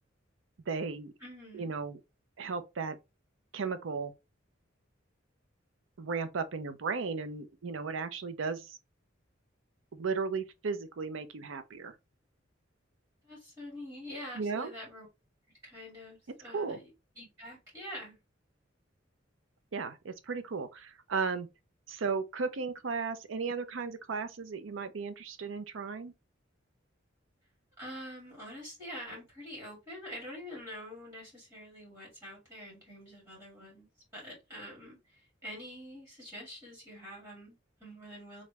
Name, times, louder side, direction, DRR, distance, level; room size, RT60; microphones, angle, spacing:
voice 1, 0.7-1.1 1.5-2.0 2.4-3.0 3.5-4.1 6.0-8.8 9.9-11.9 14.3-14.7 16.5-16.8 19.7-21.5 21.9-26.1, right 4 dB, 85° right, 0.6 m, -35 dB
voice 2, 1.2-1.7 13.2-15.1 15.6-16.9 17.2-18.2 27.8-38.4, equal, 20° right, 2.4 m, -46 dB
3.8 x 3.1 x 3.3 m
head